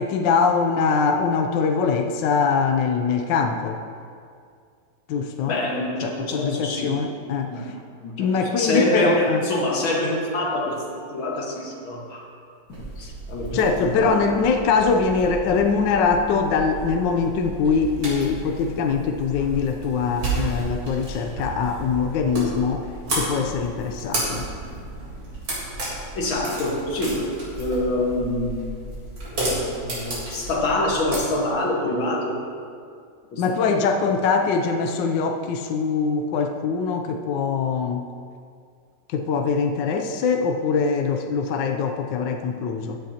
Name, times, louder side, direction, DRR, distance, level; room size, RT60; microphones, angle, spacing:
voice 1, 0.0-3.8 5.1-5.6 6.0-7.5 8.2-9.4 13.5-22.9 23.1-24.5 33.4-38.1 39.1-43.0, left 5 dB, 75° left, 4 dB, 1.3 m, -23 dB
voice 2, 5.5-7.0 7.5-7.8 8.0-12.3 12.7-14.3 26.1-28.7 29.3-32.4 33.3-34.2, left 1 dB, 90° left, -1 dB, 2.3 m, -26 dB
sound 1, 12.7-31.2, right 2 dB, 80° right, 4.3 m, -32 dB
15.0 x 10.5 x 2.9 m, 2.3 s
omnidirectional pair, 2.1 m